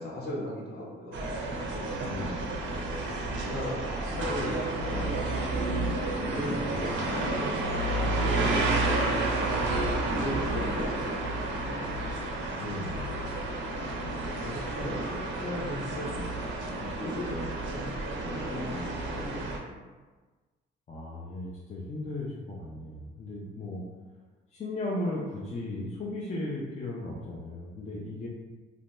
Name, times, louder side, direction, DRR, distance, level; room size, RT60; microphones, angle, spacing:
voice 1, 0.0-1.8 2.7-3.0 3.4-7.5 8.1-12.0 14.3-19.9, left 1 dB, 55° left, -4 dB, 0.9 m, -38 dB
sound 1, 1.1-19.6, right 2 dB, 75° right, 0.5 m, -31 dB
voice 2, 2.0-2.6 12.6-13.1 20.9-23.8 24.5-28.3, left 1 dB, 35° left, -5 dB, 0.5 m, -36 dB
2.5 x 2.1 x 3.0 m, 1.3 s
cardioid pair, 90°, 20 cm